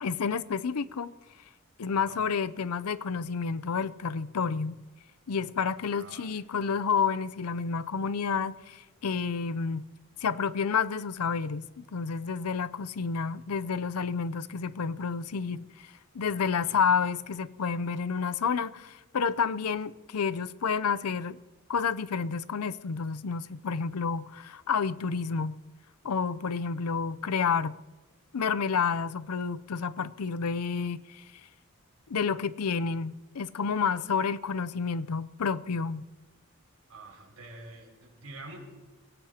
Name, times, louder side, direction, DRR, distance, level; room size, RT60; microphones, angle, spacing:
voice 1, 0.0-1.1 1.8-4.8 5.3-9.9 10.2-21.4 21.7-25.6 26.0-27.8 28.3-31.2 32.1-36.0, left 5 dB, 90° left, 0.6 m, -30 dB
voice 2, 5.9-6.4 16.2-16.3 16.6-16.8 36.9-38.6, right 2 dB, 70° right, 6.0 m, -47 dB
26.5 x 17.0 x 2.9 m
head